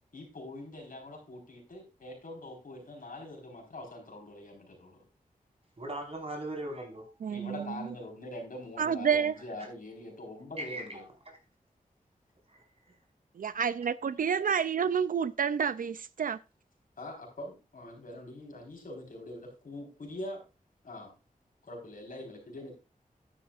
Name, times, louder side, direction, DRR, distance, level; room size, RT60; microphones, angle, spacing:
voice 1, 0.1-5.0 7.3-11.0 17.0-20.4 20.8-21.1 21.7-22.7, left 1 dB, 70° left, 4.4 m, -43 dB
voice 2, 5.8-7.2 10.6-11.4 12.5-13.0, right 1 dB, 45° right, 4.5 m, -40 dB
voice 3, 7.2-7.9 8.8-9.3 13.4-16.4, right 7 dB, 70° right, 0.4 m, -29 dB
11.5 x 10.0 x 2.5 m
wide cardioid pair, 80°, 15 cm